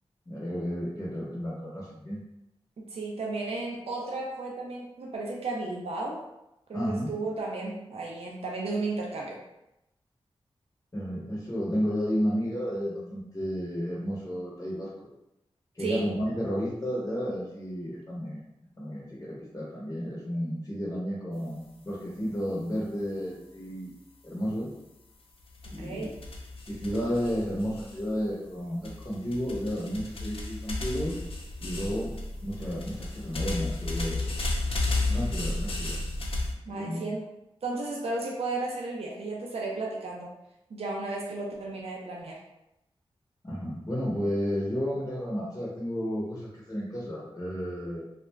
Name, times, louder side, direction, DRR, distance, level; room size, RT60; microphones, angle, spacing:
voice 1, 0.3-2.2 6.7-7.1 10.9-15.1 15.7-18.4 18.8-23.9 24.2-24.7 25.7-26.1 26.7-31.2 31.6-32.1 32.4-34.3 35.1-36.0 36.7-37.0 43.4-48.0, equal, 30° left, -6 dB, 0.9 m, -32 dB
voice 2, 2.8-6.2 6.7-9.4 15.8-16.1 25.8-26.1 36.6-37.2 37.6-40.3 40.7-42.4, right 3 dB, 75° right, -2 dB, 0.5 m, -34 dB
sound 1, 25.5-28.3 28.8-36.5, left 2 dB, 65° left, 0.5 m, -33 dB
2.4 x 2.1 x 3.3 m, 0.89 s
cardioid pair, 50°, 10 cm